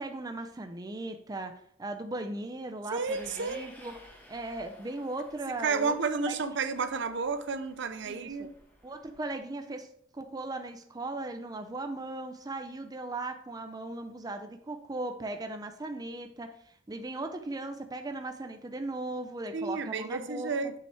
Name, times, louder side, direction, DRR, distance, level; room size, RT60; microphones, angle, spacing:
voice 1, 0.0-4.0 4.3-5.9 6.3-6.4 8.0-8.5 8.8-20.7, right 2 dB, 20° right, 6 dB, 0.5 m, -38 dB
voice 2, 2.9-3.7 5.6-8.5 19.5-20.7, right 4 dB, 65° right, 10 dB, 0.6 m, -31 dB
Train, 3.0-9.4, equal, 10° left, 1.5 m, -55 dB
7.0 x 5.8 x 3.3 m, 0.67 s
head